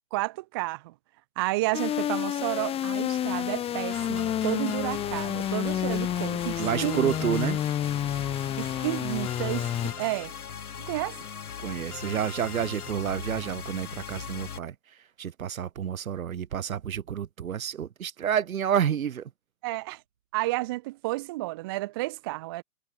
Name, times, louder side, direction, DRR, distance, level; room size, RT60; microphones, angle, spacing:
voice 1, 0.1-0.9 1.4-7.1 8.6-10.3 10.8-11.2 19.6-20.0 20.3-22.6, right 20 dB, 15° right, 0.5 m, -31 dB
sound 1, 1.7-9.9, left 10 dB, 15° left, 1.4 m, -29 dB
sound 2, 3.9-14.6, left 7 dB, 85° left, 1.7 m, -39 dB
voice 2, 6.6-7.6 11.6-19.3, right 8 dB, 70° right, 2.4 m, -29 dB
hypercardioid pair, 140°, 43 cm